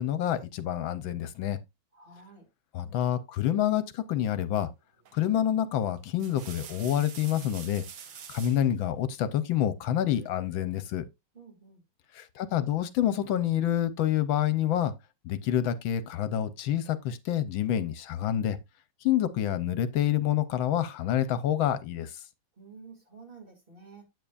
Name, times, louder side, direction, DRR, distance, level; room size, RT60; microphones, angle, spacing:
voice 1, 0.0-1.6 2.7-4.7 5.1-7.8 8.3-11.1 12.1-14.9 15.2-18.6 19.0-22.2, left 11 dB, 80° left, 1.5 m, -27 dB
voice 2, 1.9-2.5 11.3-11.8 22.5-24.0, right 4 dB, 25° right, 3.0 m, -50 dB
sound 1, 5.0-5.3 6.0-8.7 10.1-10.8, right 8 dB, 75° right, 1.8 m, -47 dB
9.2 x 8.5 x 2.5 m
omnidirectional pair, 2.2 m